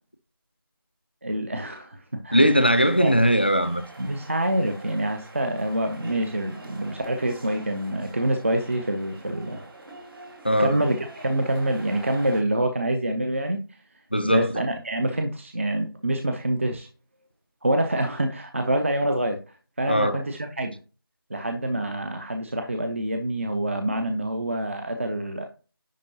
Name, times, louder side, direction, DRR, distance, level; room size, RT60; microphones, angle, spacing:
voice 1, 1.2-2.4 3.0-3.1 4.0-9.6 10.6-13.6 14.2-16.9 17.6-20.7 21.3-25.5, right 1 dB, 30° right, 0.5 m, -26 dB
voice 2, 2.3-3.8 10.4-10.8 14.1-14.5 19.9-20.2, equal, 25° left, 0.3 m, -20 dB
sound 1, 2.6-12.4, right 2 dB, 65° right, 2.1 m, -45 dB
10.0 x 3.7 x 2.8 m
figure-of-eight pair, 170°, 13 cm